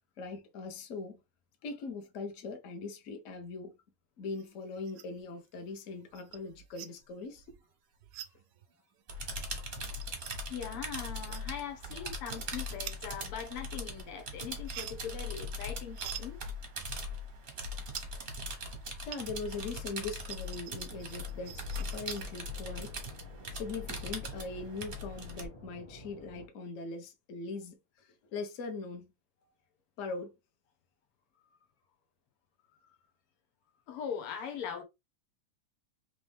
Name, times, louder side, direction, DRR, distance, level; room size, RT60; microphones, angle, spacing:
voice 1, 0.2-1.2 1.6-3.8 4.2-7.5 12.0-12.1 19.0-23.0 23.5-29.1 30.0-30.3, left 3 dB, 50° left, 1.0 m, -41 dB
sound 1, 4.3-5.3 5.6-19.6 19.9-22.2, right 12 dB, 75° right, 1.0 m, -49 dB
sound 2, 9.1-25.5, left 1 dB, 40° right, 0.8 m, -40 dB
voice 2, 10.5-16.4 18.6-19.0 32.9-33.0 33.9-34.8, left 8 dB, 85° left, 1.9 m, -41 dB
sound 3, 20.9-26.5, left 1 dB, 35° left, 0.4 m, -53 dB
4.1 x 3.0 x 3.3 m
omnidirectional pair, 2.4 m